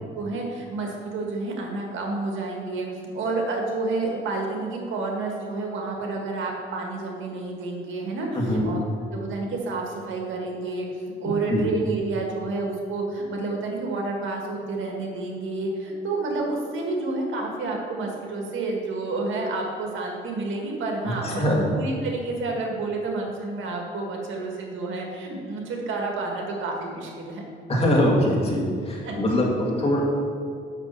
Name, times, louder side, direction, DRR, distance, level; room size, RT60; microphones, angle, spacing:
voice 1, 0.1-8.8 9.1-10.9 11.2-27.4 29.0-29.2, right 3 dB, 80° right, 0 dB, 1.6 m, -29 dB
voice 2, 8.3-8.7 11.5-11.6 21.0-21.7 27.7-30.0, left 1 dB, 30° left, -3 dB, 2.3 m, -23 dB
5.9 x 5.9 x 7.0 m, 2.4 s
cardioid pair, 90°, 20 cm